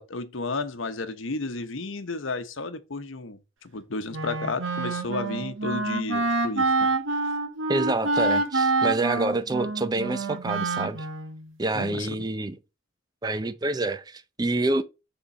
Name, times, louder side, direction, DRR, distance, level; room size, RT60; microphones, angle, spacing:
voice 1, 0.0-6.9 11.7-12.3, left 3 dB, 85° left, 0.9 m, -33 dB
Wind instrument woodwind instrument, 4.1-11.4, right 3 dB, 85° right, 1.5 m, -27 dB
voice 2, 7.7-11.1 11.6-12.6 13.2-14.8, right 2 dB, 20° right, 0.5 m, -27 dB
7.0 x 3.7 x 4.9 m
head